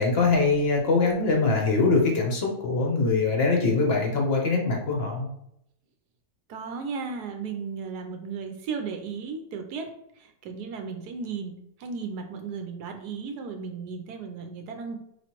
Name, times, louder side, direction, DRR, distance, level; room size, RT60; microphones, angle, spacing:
voice 1, 0.0-5.3, left 3 dB, 50° left, 1 dB, 0.8 m, -23 dB
voice 2, 6.5-9.9 10.2-15.0, right 5 dB, 75° right, 4 dB, 1.1 m, -35 dB
4.8 x 3.1 x 2.9 m, 0.76 s
omnidirectional pair, 1.8 m